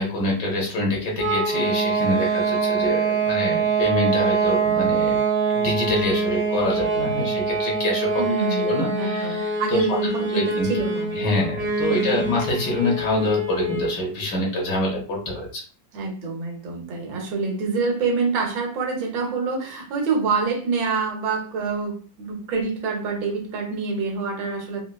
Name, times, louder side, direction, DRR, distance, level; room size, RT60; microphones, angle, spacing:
voice 1, 0.0-5.2 5.5-8.3 8.6-10.0 10.3-10.9 11.1-15.6, left 1 dB, 65° left, 1.5 m, -25 dB
sound 1, 1.2-14.0, right 4 dB, 45° right, 0.7 m, -24 dB
voice 2, 8.2-11.2 11.9-12.2 15.9-24.8, right 4 dB, 75° right, 1.6 m, -26 dB
4.3 x 2.2 x 2.2 m
omnidirectional pair, 2.1 m